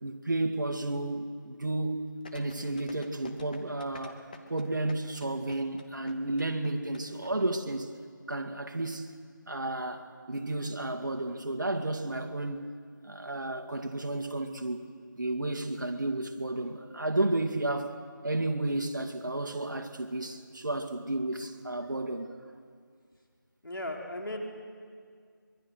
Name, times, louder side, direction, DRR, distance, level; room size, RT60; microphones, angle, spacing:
voice 1, 0.0-2.1 2.3-4.2 4.5-7.9 8.3-9.1 9.5-12.7 13.0-14.9 15.2-17.9 18.2-22.3, right 2 dB, 65° right, 2.1 m, -32 dB
sound 1, 2.2-7.3 7.6-7.7, left 4 dB, 25° left, 1.3 m, -47 dB
voice 2, 23.6-24.4, left 1 dB, 90° left, 3.9 m, -36 dB
24.5 x 23.0 x 6.5 m
figure-of-eight pair, 170°, 11 cm